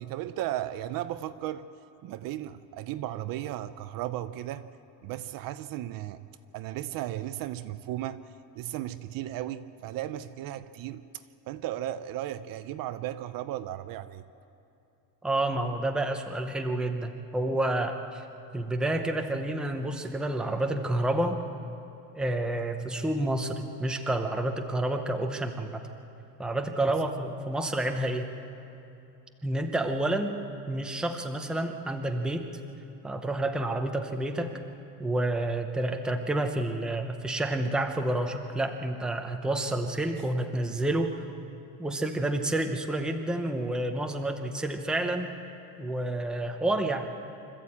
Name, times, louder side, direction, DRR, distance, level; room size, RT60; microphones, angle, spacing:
voice 1, 0.0-1.7 2.0-4.7 5.0-6.3 6.5-8.2 8.5-11.0 11.5-14.2, right 13 dB, 50° right, 11 dB, 0.6 m, -35 dB
voice 2, 15.2-18.2 18.5-21.4 22.1-25.9 26.4-28.3 29.4-30.4 30.7-32.5 33.0-34.5 35.0-41.1 41.8-45.4 45.8-47.1, right 1 dB, ahead, 4 dB, 0.7 m, -29 dB
25.5 x 14.0 x 8.5 m, 2.7 s
cardioid pair, 175°, 45 cm